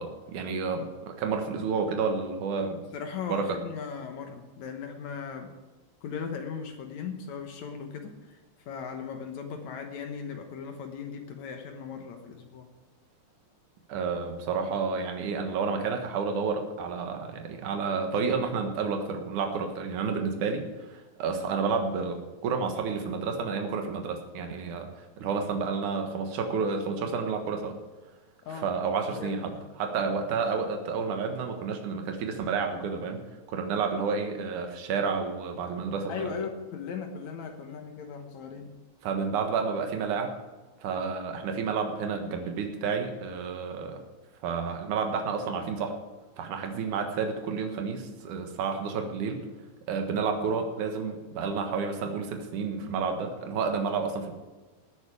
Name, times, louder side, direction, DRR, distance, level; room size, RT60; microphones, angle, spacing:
voice 1, 0.0-2.8 3.3-3.6 13.9-27.7 28.6-29.5 29.8-33.2 33.5-36.3 39.0-40.4 40.8-44.0 44.4-46.0 46.4-49.5 49.9-54.3, right 5 dB, 60° right, 4 dB, 2.6 m, -30 dB
voice 2, 2.9-5.5 6.0-12.7 28.5-28.7 29.1-29.6 36.1-38.7, left 6 dB, 65° left, 5 dB, 2.0 m, -38 dB
18.5 x 9.4 x 4.9 m, 1.2 s
omnidirectional pair, 4.5 m